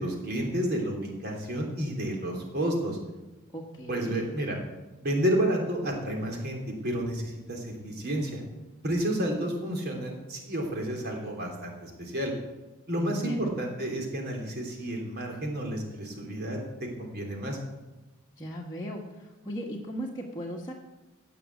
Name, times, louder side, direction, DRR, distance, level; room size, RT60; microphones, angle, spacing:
voice 1, 0.0-3.0 3.9-4.6 5.0-8.4 8.8-12.3 12.9-17.6, right 1 dB, 50° right, 1 dB, 3.3 m, -31 dB
voice 2, 3.5-4.2 13.0-13.6 18.4-20.7, equal, 20° left, -4 dB, 1.4 m, -37 dB
16.5 x 6.2 x 8.2 m, 1.1 s
head